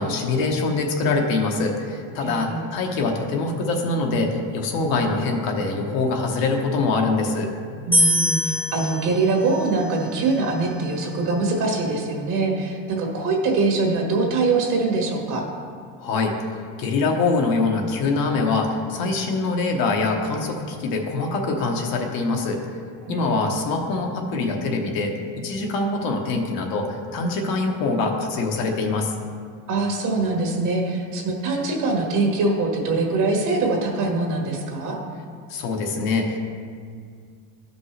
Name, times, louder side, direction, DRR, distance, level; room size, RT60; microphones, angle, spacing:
voice 1, 0.0-7.5 16.0-16.5 16.8-22.6 23.1-25.1 25.4-29.1 35.5-36.4, left 3 dB, 60° left, 2 dB, 1.1 m, -24 dB
voice 2, 2.2-2.7 7.9-15.4 23.0-23.5 29.7-35.0, right 3 dB, 50° right, 0 dB, 1.6 m, -23 dB
sound 1, 7.9-11.1, equal, 5° left, 0.9 m, -25 dB
12.5 x 5.3 x 3.3 m, 2.1 s
cardioid pair, 135°, 39 cm